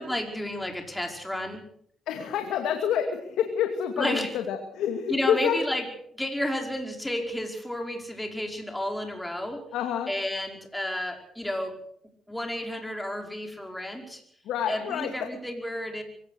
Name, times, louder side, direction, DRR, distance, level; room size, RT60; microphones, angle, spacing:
voice 1, 0.0-1.6 4.0-4.3 5.1-5.8 6.1-9.6 10.1-11.8 12.3-14.2 14.7-16.0, left 1 dB, 5° left, 3 dB, 5.1 m, -31 dB
voice 2, 2.1-5.6 9.7-10.1 14.4-15.3, left 8 dB, 85° left, 5 dB, 2.5 m, -28 dB
24.0 x 17.0 x 6.5 m, 0.66 s
cardioid pair, 90°, 0 cm